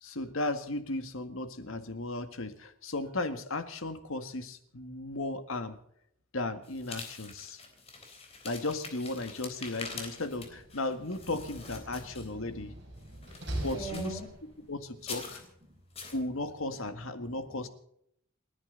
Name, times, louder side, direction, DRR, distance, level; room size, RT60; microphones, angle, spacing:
voice 1, 0.0-5.8 6.3-7.6 8.4-12.7 13.6-14.2 14.7-15.4 16.1-17.7, left 2 dB, 80° left, 9 dB, 1.9 m, -35 dB
sound 1, 6.6-12.5 13.0-14.3 15.0-15.5 15.9-16.2, left 4 dB, 30° left, 3.6 m, -45 dB
Slam, 10.2-14.7, right 1 dB, 55° right, 5.5 m, -43 dB
voice 2, 12.5-13.3 13.7-14.3 14.6-14.7 15.1-15.8 17.2-17.7, right 2 dB, 15° right, -1 dB, 4.3 m, -45 dB
29.5 x 10.5 x 4.0 m, 0.71 s
head